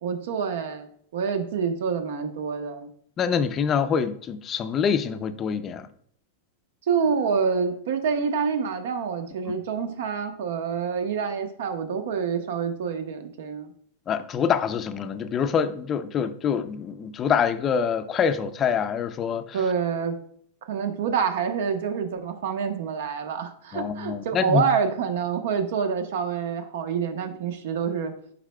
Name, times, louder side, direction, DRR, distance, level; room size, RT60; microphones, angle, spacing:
voice 1, 0.0-2.9 6.9-13.7 19.5-20.2 20.6-28.1, right 6 dB, 75° right, 1.0 m, -27 dB
voice 2, 3.2-5.9 14.1-19.6 23.7-24.6, left 7 dB, 25° left, 0.5 m, -25 dB
10.5 x 4.2 x 2.2 m
supercardioid pair, 140°, 0 cm